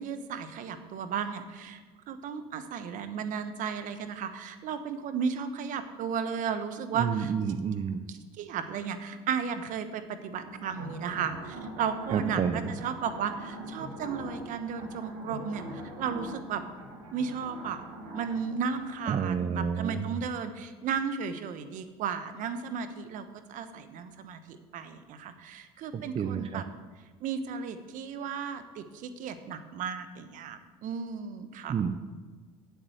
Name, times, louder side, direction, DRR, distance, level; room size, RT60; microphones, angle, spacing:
voice 1, 0.0-7.3 8.1-16.6 17.1-17.8 18.1-26.7 27.2-31.8, right 6 dB, 60° right, 11 dB, 1.2 m, -34 dB
voice 2, 7.0-8.0 12.1-12.7 19.1-20.1 25.9-26.6 31.7-31.9, right 7 dB, 40° right, 8 dB, 0.7 m, -30 dB
sound 1, 10.4-19.3, right 1 dB, 80° right, 2.6 m, -42 dB
8.6 x 8.2 x 7.9 m, 1.4 s
hypercardioid pair, 80°, 15 cm